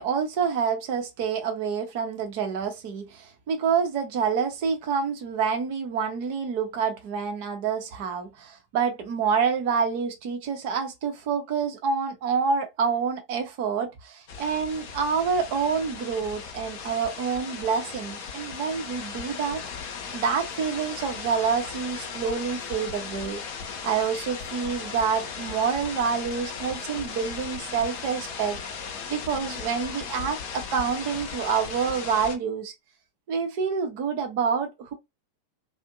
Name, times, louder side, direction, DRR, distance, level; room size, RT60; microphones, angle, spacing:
voice 1, 0.0-19.6 20.1-23.4 23.8-28.6 29.1-32.7 33.3-34.9, right 6 dB, 45° right, 0.7 m, -27 dB
sound 1, 14.3-32.4, left 6 dB, 50° left, 0.7 m, -37 dB
2.5 x 2.1 x 2.6 m
figure-of-eight pair, 90°, 0 cm